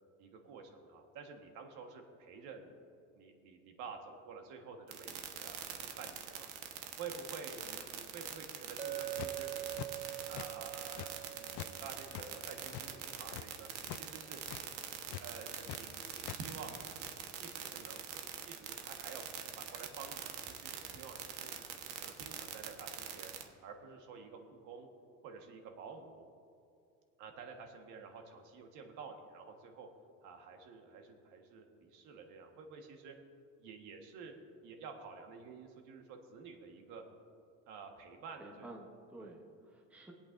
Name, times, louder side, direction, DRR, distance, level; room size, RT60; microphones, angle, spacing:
voice 1, 0.2-2.8 3.1-6.5 7.0-9.5 10.3-14.4 15.2-19.2 19.6-21.7 22.0-23.3 23.6-24.9 25.2-26.3 27.2-29.9 30.2-33.2 33.6-34.3 34.6-37.0 37.7-38.7 39.2-39.4, right 5 dB, 60° right, 3 dB, 1.5 m, -50 dB
sound 1, 4.9-23.4, right 10 dB, 80° right, 1.2 m, -43 dB
Chink clink, 8.8-13.2, right 13 dB, 20° right, 0.5 m, -44 dB
sound 2, 8.9-9.4 9.7-10.5 10.7-11.7 12.0-13.4 13.8-14.0 14.3-14.6 15.1-15.8 16.0-16.4, left 13 dB, 45° left, 0.4 m, -45 dB
voice 2, 38.4-40.1, right 2 dB, 5° right, -1 dB, 0.9 m, -52 dB
23.5 x 8.6 x 2.6 m, 2.4 s
cardioid pair, 155°, 34 cm